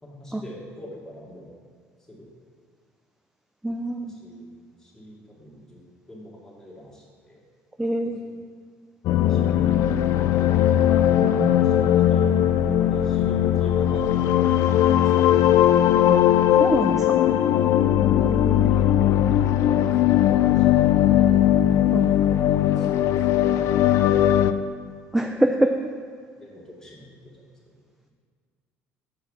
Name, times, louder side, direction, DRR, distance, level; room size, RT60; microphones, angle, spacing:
voice 1, 0.0-1.5 2.1-2.3 4.0-4.5 4.8-5.8 6.1-7.4 8.0-8.4 9.1-9.7 11.1-15.6 17.9-21.3 22.4-24.7 26.4-28.1, left 1 dB, 10° left, -5 dB, 2.2 m, -44 dB
voice 2, 3.6-4.1 7.8-8.2 11.2-11.5 16.1-16.2 16.6-17.2 18.2-18.7 21.9-22.1 25.1-25.7, right 1 dB, 5° right, 5 dB, 0.4 m, -25 dB
sound 1, 9.0-24.5, left 11 dB, 65° left, 0.4 m, -19 dB
8.0 x 4.7 x 6.1 m, 2.1 s
cardioid pair, 115°, 6 cm